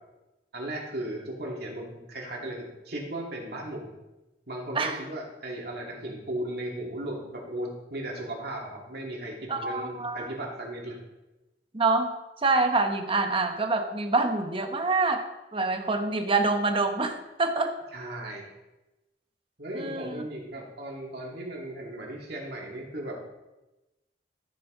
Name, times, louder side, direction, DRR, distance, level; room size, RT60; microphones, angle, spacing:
voice 1, 0.5-3.9 4.5-11.0 17.9-18.5 19.6-23.2, right 1 dB, 60° right, -1 dB, 2.4 m, -36 dB
voice 2, 9.5-10.3 11.7-12.1 12.4-15.2 15.5-17.7 19.7-20.2, right 3 dB, 30° right, 6 dB, 1.0 m, -26 dB
13.5 x 7.7 x 3.8 m, 1.0 s
head